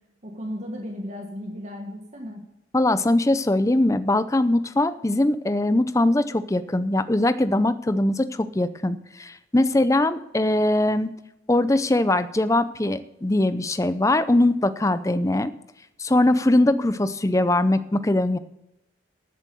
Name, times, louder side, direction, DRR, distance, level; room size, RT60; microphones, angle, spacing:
voice 1, 0.2-2.4, equal, 35° right, 1 dB, 1.6 m, -35 dB
voice 2, 2.7-11.1 11.5-15.5 16.0-18.4, left 1 dB, 15° left, 13 dB, 0.5 m, -21 dB
12.0 x 7.4 x 6.9 m, 0.87 s
head